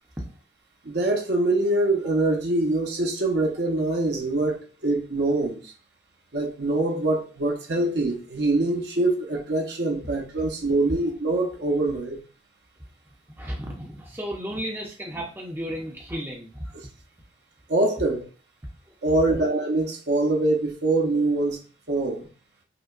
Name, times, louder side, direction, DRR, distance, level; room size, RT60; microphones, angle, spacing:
voice 1, 0.8-5.7 6.3-12.2 16.7-16.9 17.7-18.2 19.0-21.6 21.9-22.3, right 2 dB, 65° right, 0.8 m, -24 dB
voice 2, 13.4-16.6, equal, 10° right, 0.6 m, -33 dB
4.9 x 2.2 x 2.4 m
head